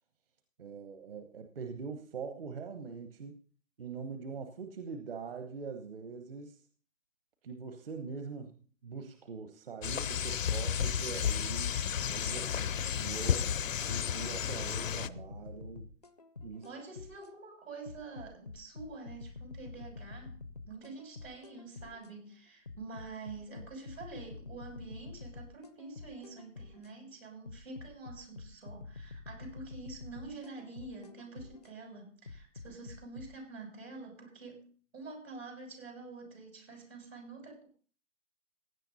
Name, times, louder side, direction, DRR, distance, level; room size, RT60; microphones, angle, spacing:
voice 1, 0.6-3.4 3.8-6.6 7.4-11.8 12.1-12.4 13.0-13.5 13.9-15.9 16.4-16.7, right 5 dB, 45° right, 6 dB, 1.1 m, -43 dB
sound 1, 9.8-15.1, left 8 dB, 75° left, 0.7 m, -32 dB
voice 2, 12.2-12.7 16.6-37.7, right 3 dB, 80° right, 2 dB, 7.5 m, -47 dB
sound 2, 14.5-17.3 17.9-22.1 22.7-26.9 27.5-31.7 32.3-33.3, left 4 dB, 30° left, 0.5 m, -48 dB
16.0 x 10.0 x 4.0 m, 0.42 s
hypercardioid pair, 170°, 40 cm